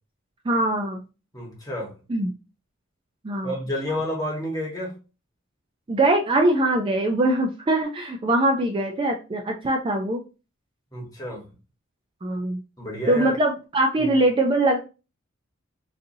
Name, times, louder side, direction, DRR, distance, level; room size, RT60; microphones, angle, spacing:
voice 1, 0.5-1.0 2.1-2.3 3.2-3.5 5.9-10.2 12.2-12.6 13.1-14.8, right 1 dB, 25° right, 2 dB, 0.4 m, -22 dB
voice 2, 1.3-1.9 3.4-5.0 10.9-11.4 12.8-13.3 14.0-14.1, left 1 dB, 20° left, -2 dB, 1.1 m, -30 dB
4.0 x 2.6 x 2.6 m, 0.31 s
head